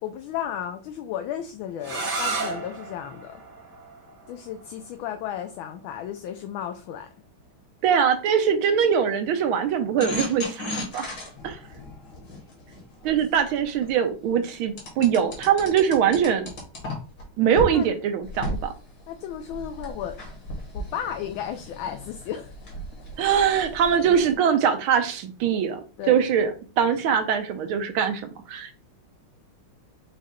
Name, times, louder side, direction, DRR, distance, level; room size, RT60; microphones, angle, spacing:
voice 1, 0.0-3.4 4.3-7.1 17.7-17.9 19.1-20.2 20.7-22.5 24.1-24.2 26.0-26.2, left 10 dB, 75° left, 6 dB, 1.3 m, -34 dB
sound 1, 1.8-7.5, right 3 dB, 35° right, 0.9 m, -35 dB
voice 2, 7.8-10.7 10.9-11.1 11.4-11.6 13.0-16.5 17.4-18.7 23.2-25.8 26.1-28.7, right 8 dB, 80° right, 8 dB, 1.5 m, -22 dB
sound 2, 10.0-13.9 14.8-17.2 17.6-17.7 18.2-24.3, left 1 dB, 50° left, 2.0 m, -36 dB
5.1 x 2.3 x 4.2 m, 0.37 s
omnidirectional pair, 2.4 m